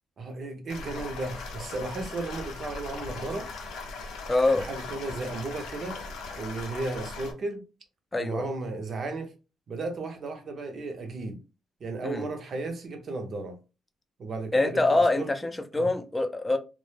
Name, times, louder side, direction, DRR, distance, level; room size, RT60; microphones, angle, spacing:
voice 1, 0.2-3.5 4.5-6.0 6.3-7.6 8.2-9.3 9.7-11.4 11.8-13.6 14.2-15.3 15.7-15.9, right 3 dB, 55° right, 0.6 m, -34 dB
sound 1, 0.7-7.3, left 4 dB, 85° left, 0.5 m, -39 dB
voice 2, 4.3-4.7 8.1-8.4 12.0-12.2 14.5-16.6, left 2 dB, 20° left, 0.4 m, -25 dB
2.1 x 2.0 x 3.1 m
cardioid pair, 90°, 0 cm